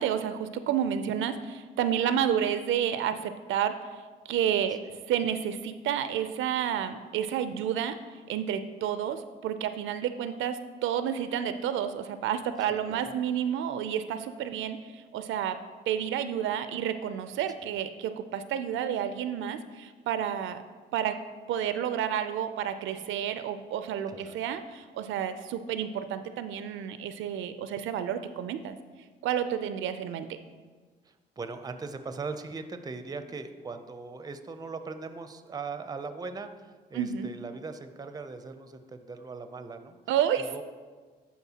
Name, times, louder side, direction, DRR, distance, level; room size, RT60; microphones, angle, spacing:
voice 1, 0.0-3.8 4.3-4.8 5.1-8.0 8.3-15.6 15.9-20.6 20.9-21.2 21.5-28.7 29.2-30.3 36.9-37.3 40.1-40.5, right 9 dB, 80° right, 10 dB, 0.4 m, -30 dB
voice 2, 12.7-13.0 17.6-17.7 24.1-24.4 31.0-40.0 40.4-40.6, right 4 dB, 20° right, 9 dB, 0.5 m, -40 dB
11.0 x 4.3 x 2.8 m, 1.4 s
cardioid pair, 90°, 20 cm